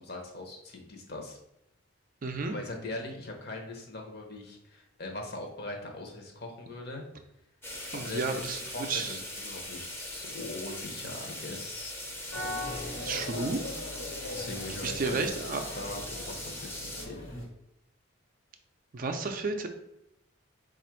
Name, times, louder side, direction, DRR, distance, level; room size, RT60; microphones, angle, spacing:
voice 1, 0.0-1.4 2.5-7.0 7.9-12.0 14.3-15.2 15.7-17.4, left 2 dB, 50° left, 2 dB, 0.8 m, -41 dB
voice 2, 2.2-2.5 7.9-9.2 13.0-13.6 14.8-15.6 18.9-19.7, right 3 dB, 40° right, 5 dB, 0.4 m, -32 dB
sound 1, 7.6-17.1, left 1 dB, 10° left, 0.5 m, -40 dB
sound 2, 12.3-17.4, left 2 dB, 75° left, 1.3 m, -39 dB
4.2 x 2.4 x 4.4 m, 0.82 s
head